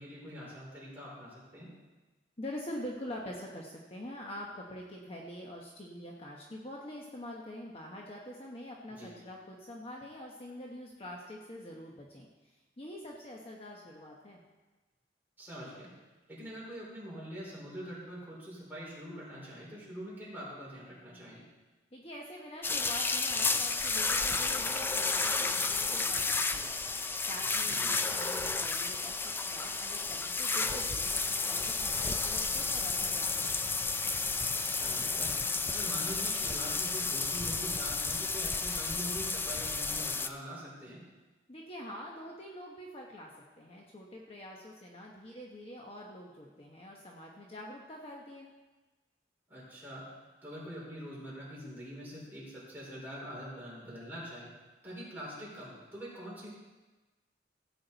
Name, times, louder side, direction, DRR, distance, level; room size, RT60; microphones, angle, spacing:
voice 1, 0.0-1.7 8.9-9.1 15.4-15.9 16.3-21.5 27.7-27.9 34.7-35.4 35.7-41.0 49.5-50.1 50.4-54.5 54.8-56.5, equal, 10° right, -7 dB, 4.4 m, -44 dB
voice 2, 2.4-12.3 12.8-14.4 21.9-26.7 27.3-33.5 41.5-43.3 43.6-48.5, left 1 dB, 35° left, -1 dB, 1.1 m, -45 dB
sound 1, 22.6-40.3, left 4 dB, 10° left, 0.3 m, -32 dB
16.0 x 8.6 x 4.1 m, 1.2 s
head